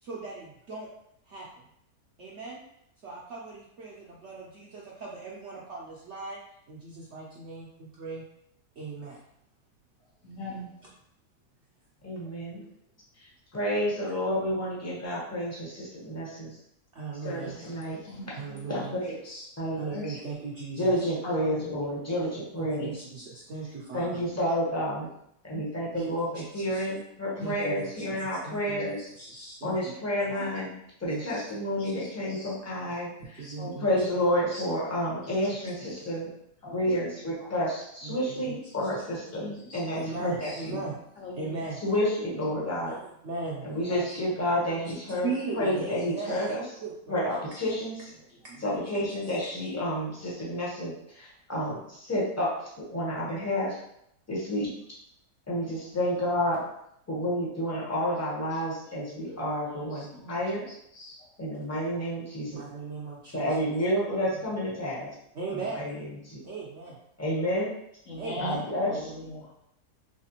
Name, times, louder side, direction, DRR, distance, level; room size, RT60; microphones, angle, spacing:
voice 1, 0.0-0.9 1.3-1.5 2.2-2.6 3.0-6.4 6.7-8.2 8.8-9.2 10.8-10.9 12.5-12.7 16.9-17.6 18.4-19.0 19.7-21.0 22.6-24.2 25.9-26.3 26.5-26.8 27.4-29.9 31.1-31.2 31.8-31.9 33.2-33.9 38.0-38.9 39.9-41.1 41.3-41.8 42.9-43.7 45.2-46.4 46.8-47.2 48.2-48.7 62.5-63.5 64.3-64.4 65.3-65.8 66.4-67.0 68.2-68.6, right 4 dB, 65° right, -5 dB, 0.7 m, -38 dB
voice 2, 10.2-10.6 17.4-17.7 18.0-18.7 19.2-19.4 19.8-20.2 21.2-22.2 24.0-24.3 25.5-25.6 27.3-27.5 29.3-29.5 32.0-32.5 33.4-33.7 34.5-34.6 35.0-35.1 36.6-37.0 39.4-39.8 40.4-40.6 41.2-41.5 42.5-42.6 43.9-44.2 47.3-47.4 59.6-59.8 60.1-60.2 60.9-61.2 68.1-69.5, left 1 dB, 60° left, -3 dB, 1.2 m, -41 dB
voice 3, 12.0-12.6 13.2-16.6 17.2-18.0 18.7-19.8 20.8-23.0 23.9-25.1 25.5-29.0 29.6-36.3 36.7-40.8 41.8-42.9 43.6-46.6 47.1-48.1 48.6-53.8 54.3-54.7 55.5-56.6 57.1-60.7 61.4-62.6 63.3-65.1 65.5-66.4 67.2-67.7 68.4-69.1, equal, 15° left, -5 dB, 0.6 m, -30 dB
3.3 x 3.1 x 2.9 m, 0.75 s
omnidirectional pair, 1.7 m